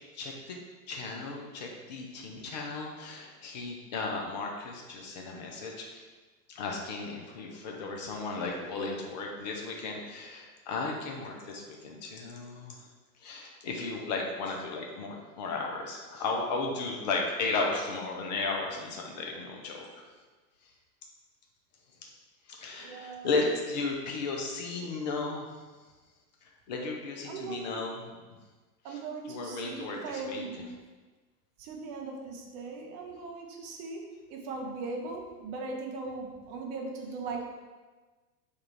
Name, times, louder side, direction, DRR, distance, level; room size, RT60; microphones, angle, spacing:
voice 1, 0.1-0.6 0.9-6.0 6.5-12.8 13.2-19.9 22.5-25.5 26.7-28.0 28.9-29.0 29.3-30.4, left 3 dB, 30° left, 0 dB, 0.4 m, -35 dB
voice 2, 22.7-23.6 27.2-27.9 28.8-30.7 31.6-34.0 34.3-37.5, right 3 dB, 25° right, 1 dB, 0.5 m, -39 dB
3.6 x 2.3 x 4.3 m, 1.3 s
figure-of-eight pair, 95°, 48 cm